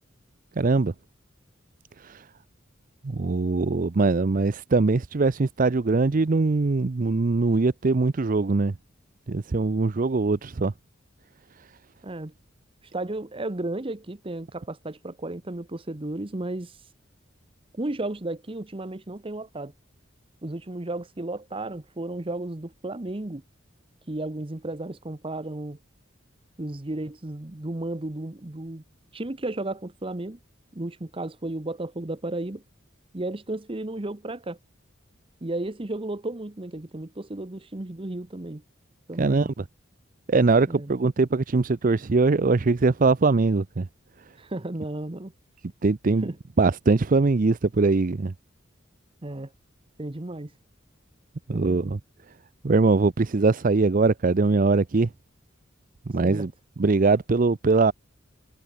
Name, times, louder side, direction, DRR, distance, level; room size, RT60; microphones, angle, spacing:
voice 1, 0.6-0.9 2.0-2.3 3.0-8.7 9.3-10.7 39.2-39.6 40.3-43.9 45.8-46.3 46.6-48.3 51.5-52.0 52.6-55.1 56.1-56.5 56.8-57.9, right 3 dB, 45° right, 0.5 m, -22 dB
voice 2, 12.9-16.8 17.7-19.7 20.4-23.4 24.1-25.8 26.6-28.8 29.1-30.4 30.7-32.6 33.1-34.6 35.4-38.6 39.1-39.5 40.6-40.9 44.4-45.3 46.2-46.4 49.2-49.5 50.0-50.5 51.5-51.9 56.2-56.5, right 2 dB, 25° right, 1.0 m, -33 dB
head